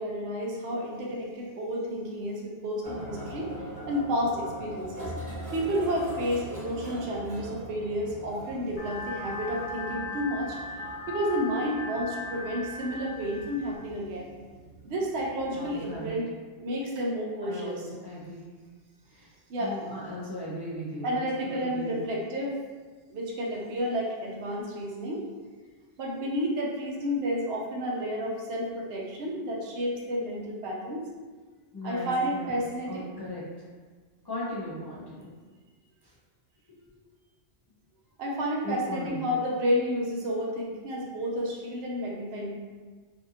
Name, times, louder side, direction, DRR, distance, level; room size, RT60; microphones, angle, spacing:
voice 1, 0.0-3.5 3.9-5.1 5.5-10.6 11.1-14.3 14.8-16.3 16.6-17.8 19.5-19.8 21.0-22.6 23.1-25.3 26.0-31.1 31.8-33.1 38.2-42.5, equal, 75° right, -2 dB, 0.8 m, -31 dB
sound 1, 2.8-16.1, right 1 dB, 45° right, 1.1 m, -42 dB
sound 2, 8.8-13.8, left 2 dB, 75° left, 1.1 m, -38 dB
voice 2, 15.5-16.2 17.4-17.8 18.0-18.4 19.1-19.3 19.6-21.2 21.4-22.0 31.7-32.6 32.8-33.4 34.2-35.3 36.0-36.1 36.7-36.8 38.6-39.3, left 1 dB, 30° left, -10 dB, 0.5 m, -37 dB
2.6 x 2.5 x 2.6 m, 1.4 s
omnidirectional pair, 1.1 m